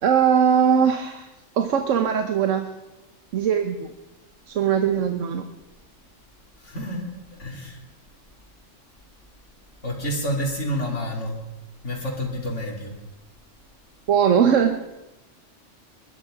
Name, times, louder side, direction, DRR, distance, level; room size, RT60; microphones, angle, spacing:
voice 1, 0.0-1.3 1.6-2.7 3.3-3.9 4.5-5.5 14.1-14.8, right 7 dB, 75° right, 7 dB, 1.2 m, -20 dB
voice 2, 6.6-7.8 9.8-11.4 11.8-12.9, equal, 65° left, 1 dB, 3.0 m, -29 dB
20.0 x 11.5 x 5.0 m, 1.0 s
omnidirectional pair, 1.3 m